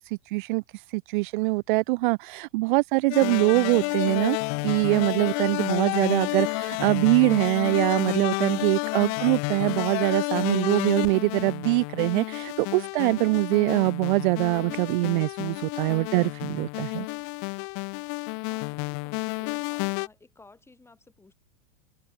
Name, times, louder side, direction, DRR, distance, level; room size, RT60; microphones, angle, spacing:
voice 1, 0.0-4.4 4.6-17.1, right 23 dB, 55° right, 0.5 m, -23 dB
sound 1, 3.1-20.1, left 39 dB, 50° left, 2.0 m, -30 dB
voice 2, 18.4-21.3, left 3 dB, 10° left, 6.4 m, -55 dB
supercardioid pair, 140°, 31 cm